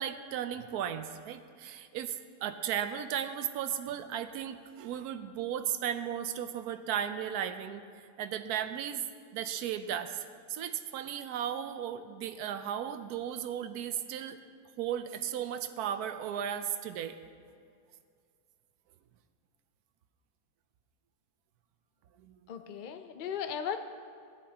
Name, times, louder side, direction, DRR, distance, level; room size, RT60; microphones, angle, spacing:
voice 1, 0.0-9.0 9.3-14.4 14.8-17.2 22.2-22.4, right 9 dB, 80° right, 10 dB, 1.1 m, -35 dB
voice 2, 22.5-23.8, left 8 dB, 75° left, 7 dB, 0.4 m, -36 dB
15.5 x 10.5 x 2.9 m, 2.2 s
omnidirectional pair, 1.6 m